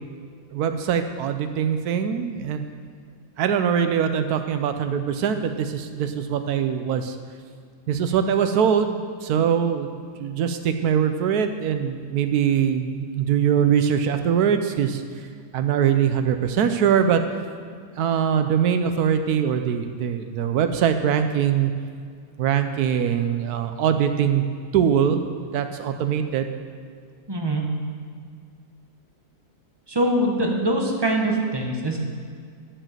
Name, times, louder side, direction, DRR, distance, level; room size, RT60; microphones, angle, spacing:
voice 1, 0.5-2.6 3.4-7.2 7.9-9.9 10.2-15.0 15.5-17.2 18.0-21.7 22.4-24.4 24.7-26.5, right 8 dB, 70° right, 8 dB, 1.2 m, -22 dB
voice 2, 27.3-27.7 29.9-32.0, right 1 dB, 20° right, 1 dB, 0.9 m, -23 dB
11.0 x 5.0 x 7.3 m, 2.2 s
omnidirectional pair, 1.8 m